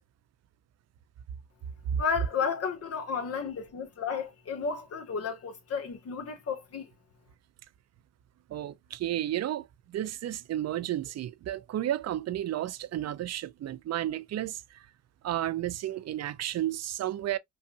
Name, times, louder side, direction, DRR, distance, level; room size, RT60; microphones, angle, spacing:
voice 1, 2.0-6.9, left 6 dB, 55° left, 1.4 m, -32 dB
voice 2, 8.5-14.6 15.2-17.4, right 12 dB, 60° right, 0.6 m, -32 dB
5.5 x 2.4 x 2.5 m
cardioid pair, 90°, 30 cm